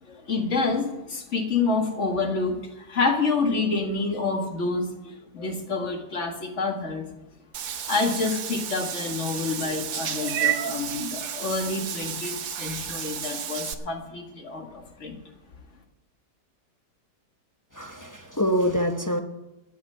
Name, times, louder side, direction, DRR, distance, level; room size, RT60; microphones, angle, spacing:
voice 1, 0.0-7.0 7.9-15.2, left 3 dB, 45° left, 2.0 m, -28 dB
Meow / Water / Bathtub (filling or washing), 7.5-13.7, right 9 dB, 60° right, 1.2 m, -31 dB
voice 2, 17.7-19.2, equal, 20° left, 0.5 m, -25 dB
12.5 x 6.7 x 9.8 m
omnidirectional pair, 1.8 m